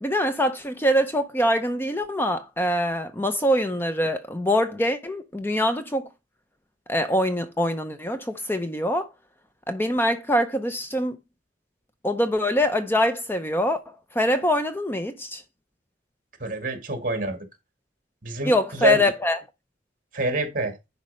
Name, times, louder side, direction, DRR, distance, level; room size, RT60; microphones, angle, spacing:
voice 1, 0.0-6.1 6.9-9.1 9.7-11.2 12.0-13.8 14.1-15.4 18.4-19.4, left 1 dB, 10° left, 0.6 m, -24 dB
voice 2, 16.4-17.4 18.2-19.0 20.1-20.7, right 2 dB, 45° right, 2.0 m, -26 dB
10.5 x 4.2 x 5.4 m
head